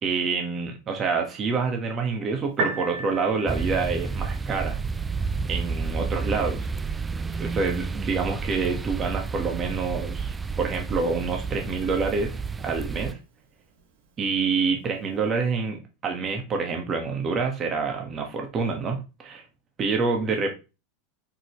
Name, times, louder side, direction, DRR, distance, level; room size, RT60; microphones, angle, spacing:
voice 1, 0.0-4.8 5.4-6.7 7.4-12.3 12.6-13.2 14.2-19.4 19.8-20.5, right 4 dB, 30° right, 3 dB, 1.6 m, -27 dB
Piano, 2.4-15.5, right 4 dB, 65° right, 1.7 m, -41 dB
sound 1, 3.5-13.1, right 4 dB, 15° right, 0.3 m, -30 dB
6.0 x 5.2 x 3.2 m, 0.28 s
hypercardioid pair, 110°, 0 cm